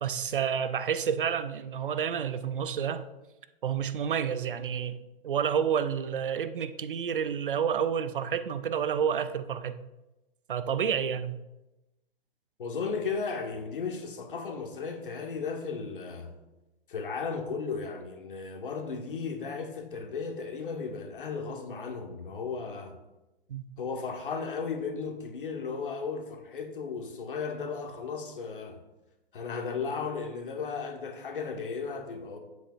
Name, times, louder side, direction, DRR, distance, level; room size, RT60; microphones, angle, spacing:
voice 1, 0.0-3.0 3.6-5.0 5.2-9.7 10.5-11.4 23.5-23.6, right 8 dB, 60° right, 0.6 m, -29 dB
voice 2, 12.6-16.3 16.9-22.9 23.8-28.8 29.3-32.4, left 5 dB, 60° left, 1.3 m, -35 dB
9.6 x 7.9 x 2.4 m
figure-of-eight pair, 120°, 31 cm